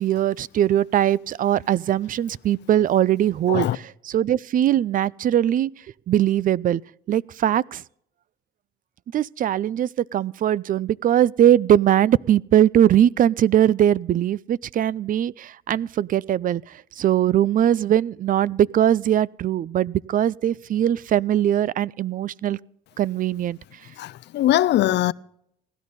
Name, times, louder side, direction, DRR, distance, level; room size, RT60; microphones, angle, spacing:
voice 1, 0.0-5.7 6.1-6.8 7.1-7.8 9.1-16.6 17.0-22.6 23.0-23.6, right 11 dB, 45° right, 0.4 m, -21 dB
voice 2, 24.0-25.1, left 14 dB, 60° left, 0.5 m, -21 dB
16.5 x 11.0 x 4.1 m
supercardioid pair, 65°, 21 cm